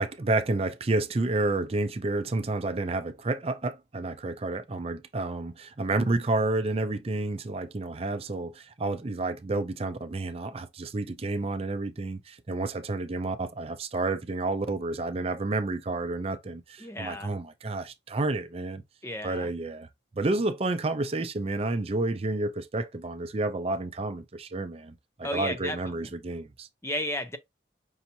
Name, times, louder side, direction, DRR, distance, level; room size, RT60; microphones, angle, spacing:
voice 1, 0.0-18.8 19.2-19.9 20.2-26.7, right 2 dB, 35° right, 0.5 m, -30 dB
voice 2, 16.8-17.4 19.0-19.5 25.2-25.8 26.8-27.4, left 1 dB, 15° left, 0.6 m, -33 dB
5.5 x 2.8 x 2.6 m
head